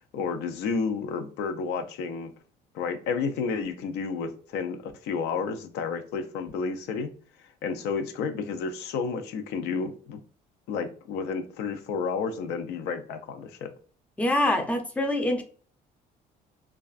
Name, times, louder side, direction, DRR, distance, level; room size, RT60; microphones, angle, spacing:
voice 1, 0.1-2.3 2.7-7.1 7.4-10.2 10.7-13.7, left 5 dB, 85° left, 0.4 m, -31 dB
voice 2, 14.2-15.4, left 1 dB, 10° left, 0.4 m, -25 dB
2.4 x 2.2 x 2.3 m
cardioid pair, 110°, 17 cm